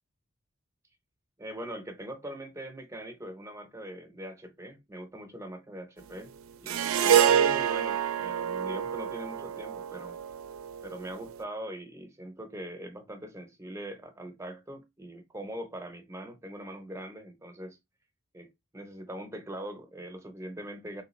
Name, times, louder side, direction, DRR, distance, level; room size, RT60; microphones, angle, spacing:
voice 1, 1.4-6.3 6.6-10.2 10.8-17.8 18.3-21.0, right 1 dB, 15° right, 0.6 m, -42 dB
sound 1, 6.7-11.3, right 9 dB, 80° right, 0.4 m, -27 dB
3.2 x 3.2 x 3.1 m
head